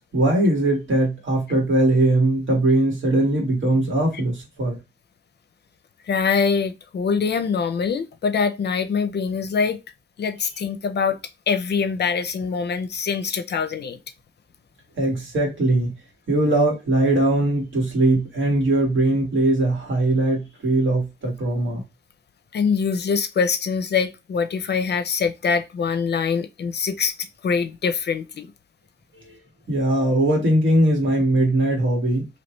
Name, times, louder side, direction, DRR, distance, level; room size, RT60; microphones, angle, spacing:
voice 1, 0.0-4.8 15.0-15.9 16.3-21.8 29.7-32.3, right 1 dB, 80° right, 1.7 m, -20 dB
voice 2, 6.1-9.8 10.2-11.2 11.5-14.0 22.5-27.1 27.4-28.5, left 5 dB, 60° left, 0.5 m, -24 dB
3.1 x 2.8 x 3.1 m
wide cardioid pair, 145°, 19 cm